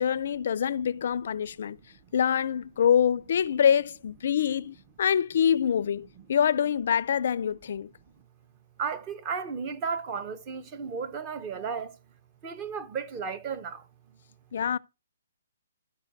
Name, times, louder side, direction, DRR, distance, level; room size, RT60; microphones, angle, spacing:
voice 1, 0.0-1.8 2.1-7.9 14.5-14.8, left 8 dB, 50° left, 0.4 m, -25 dB
voice 2, 8.8-12.0 12.4-13.9, right 6 dB, 20° right, 0.6 m, -34 dB
12.5 x 4.6 x 3.9 m
hypercardioid pair, 165°, 0 cm